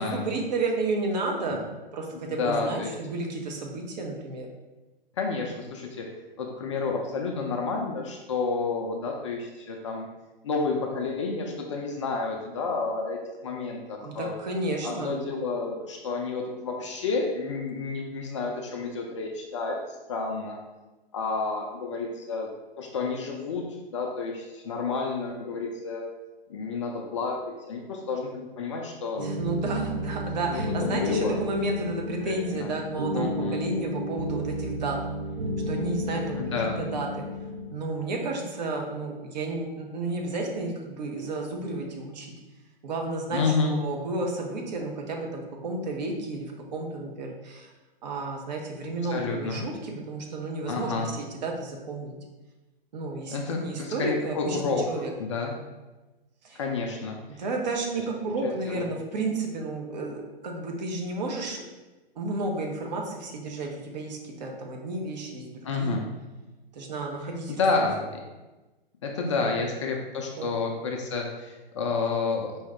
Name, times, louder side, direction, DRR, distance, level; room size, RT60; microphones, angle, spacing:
voice 1, 0.0-4.5 14.0-15.1 29.2-35.0 35.7-36.4 36.8-37.1 37.7-42.3 42.8-47.7 48.0-52.1 52.9-55.1 56.4-56.6 57.3-61.6 62.1-66.0 66.7-67.6 69.2-69.5 70.4-70.5, right 3 dB, 45° right, 1 dB, 0.8 m, -32 dB
voice 2, 2.1-2.9 5.2-6.0 6.4-10.1 10.4-14.4 14.8-20.6 21.1-22.5 22.8-26.0 26.5-29.3 30.5-31.4 32.2-32.7 33.1-33.6 36.4-36.8 43.3-43.7 49.1-49.6 50.7-51.1 53.3-54.9 55.2-55.5 56.5-57.2 58.3-58.9 65.6-66.1 67.5-68.1 69.0-72.5, left 4 dB, 30° left, 1 dB, 0.4 m, -30 dB
sound 1, 29.2-37.7, left 1 dB, 85° right, 0.6 m, -32 dB
4.6 x 2.7 x 3.4 m, 1.1 s
figure-of-eight pair, 115°, 30 cm